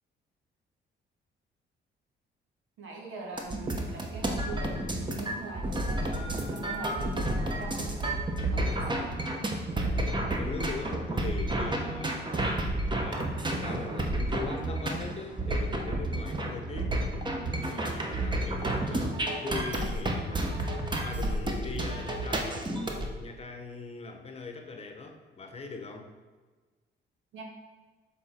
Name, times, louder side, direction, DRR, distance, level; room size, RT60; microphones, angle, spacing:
voice 1, 2.8-8.2 8.5-9.1 27.3-27.4, right 3 dB, 85° right, -1 dB, 1.5 m, -43 dB
sound 1, 3.4-23.1, right 1 dB, 25° right, 0.9 m, -31 dB
voice 2, 9.9-12.6 12.9-17.2 17.4-20.7 21.0-22.8 23.1-26.1, left 3 dB, 30° left, 4 dB, 0.9 m, -41 dB
6.7 x 3.7 x 4.3 m, 1.3 s
cardioid pair, 90°, 20 cm